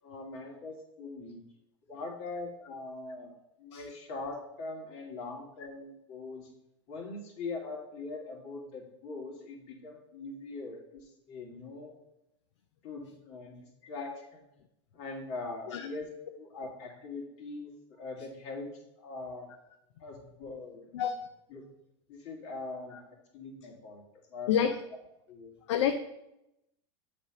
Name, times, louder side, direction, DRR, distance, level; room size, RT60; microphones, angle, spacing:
voice 1, 0.0-1.4 1.9-3.3 3.6-6.5 6.9-11.9 12.8-14.4 14.9-16.1 16.4-18.7 19.0-19.5 20.0-21.1 21.5-21.6 22.1-24.0 24.3-24.5 25.3-25.5, left 3 dB, 55° left, -1 dB, 2.4 m, -42 dB
voice 2, 20.9-21.3 22.9-23.0 24.5-24.8 25.7-26.0, left 8 dB, 75° left, 7 dB, 0.5 m, -28 dB
7.3 x 3.5 x 5.9 m, 0.85 s
hypercardioid pair, 100°, 15 cm